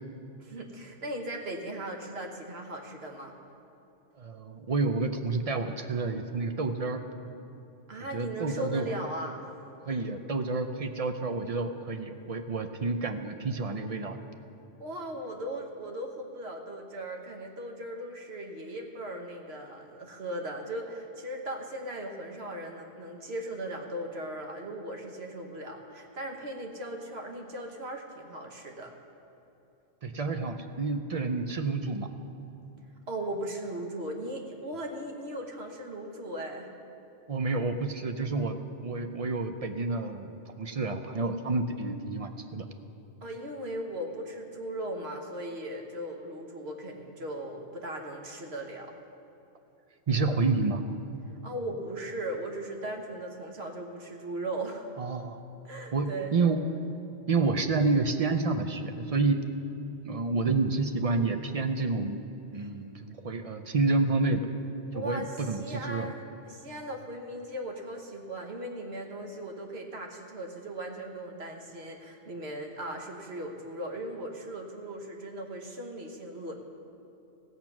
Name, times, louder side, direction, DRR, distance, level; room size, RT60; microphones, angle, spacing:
voice 1, 0.4-3.4 7.9-9.5 14.8-28.9 33.1-36.7 43.2-48.9 51.4-54.9 55.6-56.4 62.5-62.7 64.9-76.5, right 1 dB, 60° right, 2 dB, 1.4 m, -38 dB
voice 2, 4.2-7.0 8.0-8.9 9.9-14.2 30.0-32.1 37.3-38.6 38.8-42.6 50.1-50.8 55.0-55.4 55.9-56.6 57.3-59.4 60.0-62.2 62.5-64.4 64.9-66.1, right 3 dB, 45° right, 7 dB, 0.5 m, -29 dB
16.0 x 7.4 x 6.0 m, 2.9 s
omnidirectional pair, 1.2 m